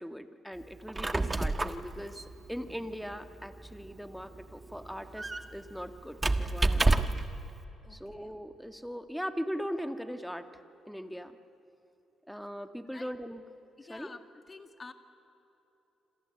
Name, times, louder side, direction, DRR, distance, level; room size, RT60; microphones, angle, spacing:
voice 1, 0.0-7.2 7.9-10.5 10.9-11.4 12.3-13.4 13.9-14.1, equal, ahead, 8 dB, 1.7 m, -40 dB
Squeak, 0.7-7.4, right 2 dB, 20° right, 1.3 m, -31 dB
voice 2, 7.8-8.3 12.9-13.1 13.8-14.9, left 3 dB, 30° left, 8 dB, 2.2 m, -49 dB
27.5 x 26.5 x 8.0 m, 3.0 s
cardioid pair, 90°, 0 cm